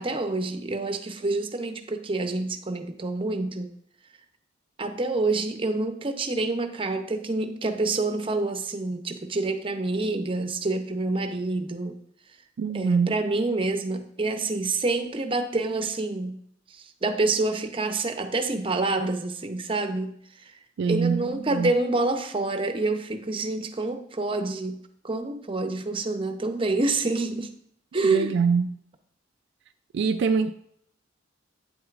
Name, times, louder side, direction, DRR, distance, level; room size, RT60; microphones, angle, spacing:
voice 1, 0.0-3.7 4.8-12.0 12.7-16.4 16.7-20.1 20.4-20.5 20.9-27.5 27.9-28.4, right 2 dB, 25° right, 7 dB, 0.7 m, -27 dB
voice 2, 12.6-13.2 20.8-21.7 28.0-28.8 29.9-30.5, right 5 dB, 60° right, 7 dB, 0.3 m, -24 dB
9.1 x 7.8 x 2.5 m, 0.68 s
head